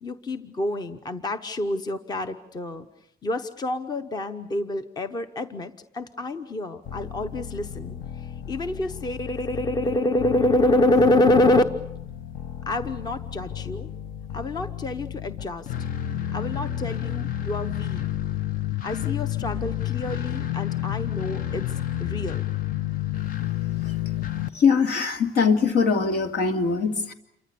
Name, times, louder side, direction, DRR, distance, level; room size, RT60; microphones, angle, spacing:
voice 1, 0.0-2.9 3.2-11.6 12.7-13.9 14.3-15.7 16.3-18.0 18.8-21.7 22.0-22.4, left 1 dB, 25° left, 10 dB, 1.0 m, -26 dB
sound 1, 6.9-24.5, left 11 dB, 55° left, 1.0 m, -31 dB
voice 2, 24.5-27.1, left 5 dB, 70° left, 6 dB, 2.7 m, -22 dB
28.5 x 24.0 x 6.9 m, 0.77 s
cardioid pair, 165°, 17 cm